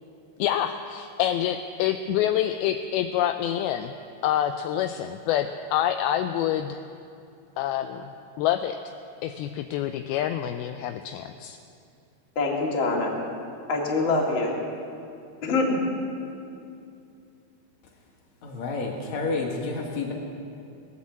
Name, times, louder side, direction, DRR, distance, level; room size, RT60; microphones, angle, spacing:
voice 1, 0.4-3.9 4.2-6.8 7.6-8.1 8.4-8.8 9.2-11.6, left 11 dB, 85° left, 8 dB, 2.2 m, -27 dB
voice 2, 12.4-13.2 13.7-14.5 15.4-15.8, left 3 dB, 35° left, -2 dB, 2.3 m, -24 dB
voice 3, 18.4-20.1, left 3 dB, 55° left, 0 dB, 2.5 m, -30 dB
20.0 x 8.4 x 7.4 m, 2.5 s
omnidirectional pair, 4.8 m